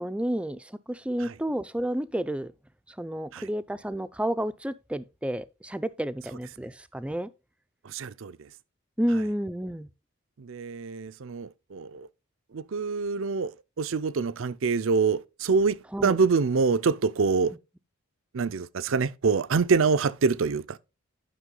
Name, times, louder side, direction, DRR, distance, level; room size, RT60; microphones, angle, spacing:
voice 1, 0.0-2.5 2.9-7.3 9.0-9.9 15.9-16.2, right 1 dB, 5° right, 0.4 m, -30 dB
voice 2, 7.9-8.3 10.4-12.1 12.5-13.5 13.8-15.8 16.0-17.5 18.3-20.8, right 4 dB, 70° right, 0.5 m, -25 dB
11.0 x 6.1 x 3.8 m
head